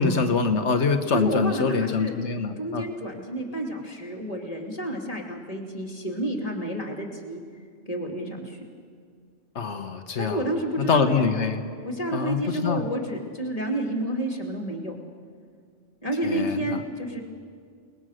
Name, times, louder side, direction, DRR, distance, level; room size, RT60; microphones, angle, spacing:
voice 1, 0.0-2.8 9.5-10.4 10.8-11.6 12.1-12.9 16.2-16.8, left 5 dB, 75° left, 7 dB, 1.5 m, -24 dB
voice 2, 1.1-2.1 2.6-7.4 7.9-8.6 10.2-11.3 11.8-15.0 16.0-17.2, right 1 dB, 30° left, 1 dB, 2.7 m, -30 dB
29.5 x 20.0 x 6.5 m, 2.2 s
omnidirectional pair, 1.2 m